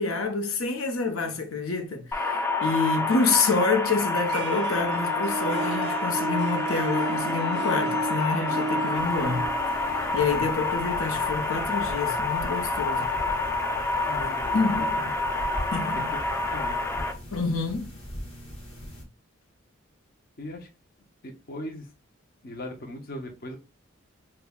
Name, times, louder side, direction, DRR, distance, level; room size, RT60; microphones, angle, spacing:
voice 1, 0.0-9.5 9.8-13.1 14.2-14.9 15.7-16.1 17.3-17.9, left 4 dB, 80° left, 0.8 m, -28 dB
sound 1, 2.1-17.1, left 3 dB, 10° left, 0.4 m, -28 dB
Harp, 4.3-11.2, right 4 dB, 55° right, 0.4 m, -34 dB
sound 2, 8.9-19.0, equal, 30° left, 1.2 m, -40 dB
voice 2, 14.1-15.0 15.8-16.0 16.5-16.8 20.4-20.7 21.2-21.9 22.4-23.6, left 1 dB, 45° left, 0.7 m, -38 dB
5.3 x 2.2 x 2.2 m
head